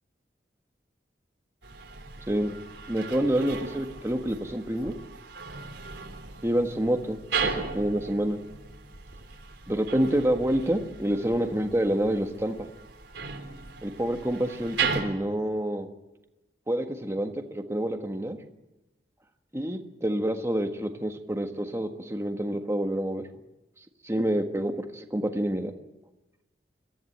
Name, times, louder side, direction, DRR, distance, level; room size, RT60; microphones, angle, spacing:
sound 1, 1.6-15.0, right 5 dB, 85° right, 3.5 m, -36 dB
voice 1, 2.9-4.9 6.4-8.4 9.7-12.6 13.8-15.9 16.7-18.4 19.5-23.2 24.0-25.7, right 1 dB, 15° right, 5 dB, 1.5 m, -27 dB
22.5 x 14.5 x 8.7 m, 0.98 s
head